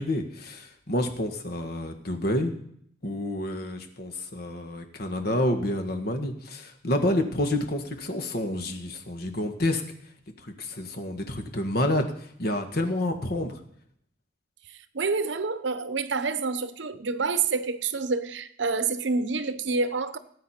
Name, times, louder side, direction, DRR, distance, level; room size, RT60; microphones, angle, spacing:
voice 1, 0.0-2.5 3.0-9.8 10.4-13.6, left 1 dB, 55° left, 1.7 m, -29 dB
voice 2, 14.9-20.2, right 4 dB, 75° right, 0.8 m, -28 dB
18.5 x 8.9 x 4.4 m
head